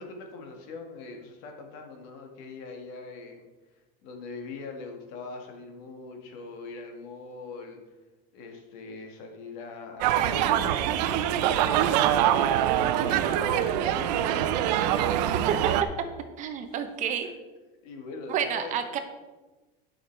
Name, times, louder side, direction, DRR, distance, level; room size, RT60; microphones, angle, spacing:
voice 1, 0.0-3.5 4.0-7.8 8.3-12.0 12.7-14.4 17.8-18.7, left 3 dB, 65° left, 3 dB, 2.0 m, -42 dB
sound 1, 10.0-15.8, right 11 dB, 85° right, 0.7 m, -24 dB
voice 2, 16.4-17.3 18.3-19.0, right 8 dB, 35° right, 7 dB, 0.9 m, -29 dB
10.5 x 6.3 x 4.7 m, 1.2 s
cardioid pair, 160°, 21 cm